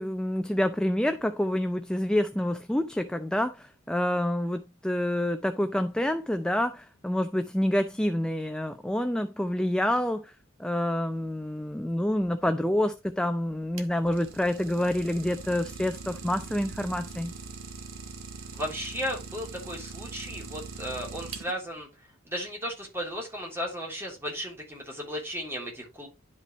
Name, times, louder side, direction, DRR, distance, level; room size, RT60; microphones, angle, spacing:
voice 1, 0.0-10.3 10.6-17.3, left 1 dB, 5° left, 0.4 m, -27 dB
Idling, 13.5-21.8, right 4 dB, 70° right, 1.2 m, -42 dB
voice 2, 18.5-21.9 22.2-26.1, equal, 10° right, 3.3 m, -35 dB
11.0 x 5.5 x 3.1 m
head